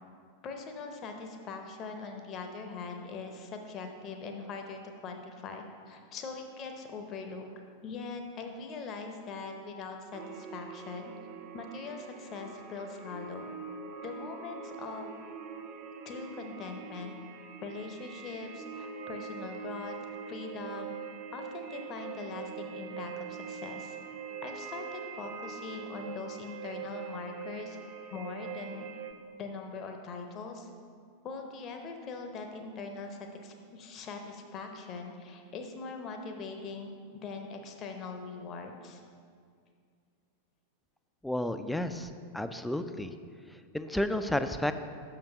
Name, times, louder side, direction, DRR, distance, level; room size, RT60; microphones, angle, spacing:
voice 1, 0.4-7.5 7.8-11.1 11.5-13.5 14.0-15.1 16.0-17.1 17.6-20.9 21.3-24.0 24.4-27.8 28.1-28.9 29.3-30.7 31.2-39.0, left 4 dB, 30° left, 4 dB, 0.7 m, -41 dB
sound 1, 10.1-29.1, right 6 dB, 40° right, 0.7 m, -43 dB
voice 2, 41.2-43.1 43.5-44.7, left 1 dB, 5° left, 9 dB, 0.4 m, -32 dB
6.5 x 5.8 x 5.6 m, 2.2 s
figure-of-eight pair, 90°, 0 cm